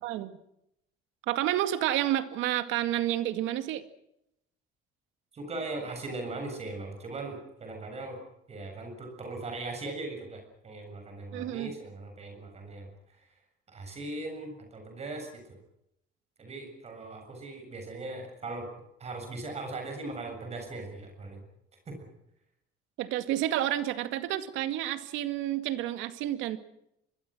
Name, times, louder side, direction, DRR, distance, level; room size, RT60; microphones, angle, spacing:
voice 1, 0.0-0.3 1.3-3.8 11.3-11.7 23.0-26.6, right 13 dB, 85° right, 10 dB, 2.2 m, -30 dB
voice 2, 5.3-8.2 8.5-13.3 13.7-15.4 16.4-18.7 19.0-21.4 21.9-22.0, right 2 dB, 35° right, 4 dB, 7.2 m, -39 dB
26.0 x 22.0 x 6.3 m, 0.78 s
cardioid pair, 135°, 20 cm